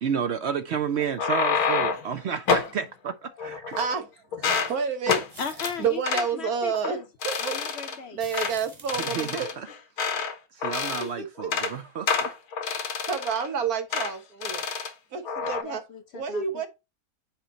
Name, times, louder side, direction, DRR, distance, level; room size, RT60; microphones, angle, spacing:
voice 1, 0.0-3.8 9.0-9.7 10.5-12.3, right 7 dB, 60° right, 0.8 m, -31 dB
sound 1, 1.0-2.1 2.5-2.7 3.4-4.0 4.3-4.7 5.1-5.3 5.6-5.7 6.1-6.3 6.7-6.9 7.2-8.0 8.3-8.5 8.9-10.3 10.6-11.1 11.4-11.7 12.1-13.5 13.9-14.1 14.4-14.9 15.3-15.6, left 6 dB, 85° left, 1.5 m, -28 dB
voice 2, 3.8-4.1 4.4-5.2 5.8-7.0 7.2-7.6 8.1-9.5 11.0-11.7 13.0-14.6 15.1-15.8 16.1-16.7, right 6 dB, 80° right, 1.7 m, -29 dB
sound 2, 5.3-6.0 8.2-9.5, right 2 dB, 30° right, 1.5 m, -46 dB
voice 3, 5.4-7.0 7.4-8.2 15.4-16.6, left 6 dB, 55° left, 0.9 m, -37 dB
8.9 x 3.1 x 3.9 m
omnidirectional pair, 1.5 m